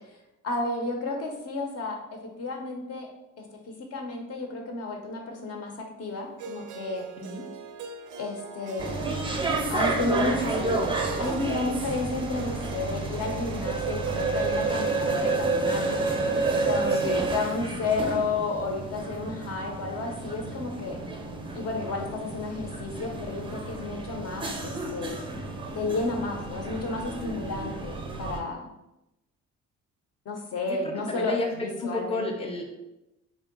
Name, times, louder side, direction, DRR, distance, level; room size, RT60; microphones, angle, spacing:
voice 1, 0.4-3.1 3.9-5.7 6.0-7.1 8.2-9.0 9.7-10.8 11.2-16.1 16.6-21.0 21.5-25.2 25.7-28.6 30.3-32.5, left 3 dB, 55° left, 2 dB, 0.9 m, -32 dB
Harp, 6.4-18.5, right 6 dB, 75° right, 0.4 m, -44 dB
sound 1, 8.8-28.4, right 3 dB, 15° right, 0.5 m, -30 dB
voice 2, 16.9-17.7 30.7-31.5 31.8-32.8, left 2 dB, 20° left, 1 dB, 0.7 m, -33 dB
3.7 x 2.3 x 3.7 m, 0.92 s
cardioid pair, 90°, 30 cm